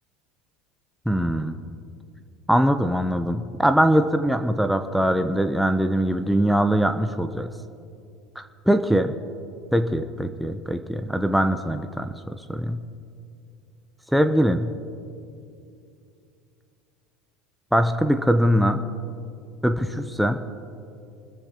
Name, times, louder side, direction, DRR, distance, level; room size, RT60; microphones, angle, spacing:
voice 1, 1.1-1.6 2.5-7.5 8.4-9.1 9.7-12.8 14.1-14.7 17.7-18.8 19.6-20.4, equal, ahead, 6 dB, 0.7 m, -22 dB
26.0 x 13.5 x 3.0 m, 2.5 s
hypercardioid pair, 95°, 0 cm